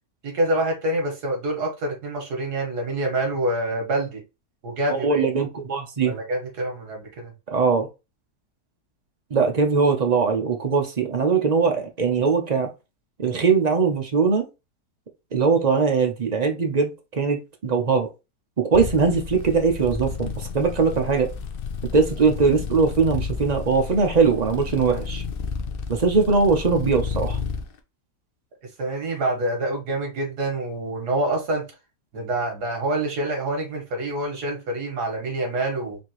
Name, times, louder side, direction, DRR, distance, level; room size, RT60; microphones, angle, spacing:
voice 1, 0.2-4.2 4.6-5.2 6.0-7.3 28.6-31.6 32.1-36.0, right 1 dB, 80° right, 2.0 m, -26 dB
voice 2, 4.9-6.1 7.5-7.9 9.3-12.7 13.2-14.4 15.3-18.1 18.6-21.3 21.9-25.2 25.9-27.4, right 5 dB, 50° right, 0.5 m, -21 dB
sound 1, 18.7-27.6, left 5 dB, 65° left, 0.5 m, -32 dB
4.3 x 2.8 x 3.0 m
omnidirectional pair, 1.7 m